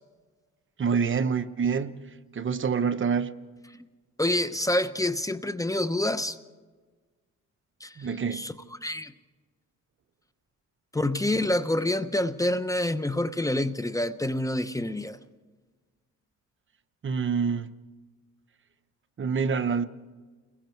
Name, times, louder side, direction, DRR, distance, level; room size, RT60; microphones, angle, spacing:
voice 1, 0.8-2.0 2.3-3.4 8.0-8.5 17.0-17.7 19.2-19.9, right 6 dB, 40° right, 1.0 m, -26 dB
voice 2, 4.2-6.4 7.8-8.5 8.8-9.1 10.9-15.2, left 1 dB, 10° left, 0.9 m, -27 dB
30.0 x 21.5 x 4.6 m
cardioid pair, 90°, 30 cm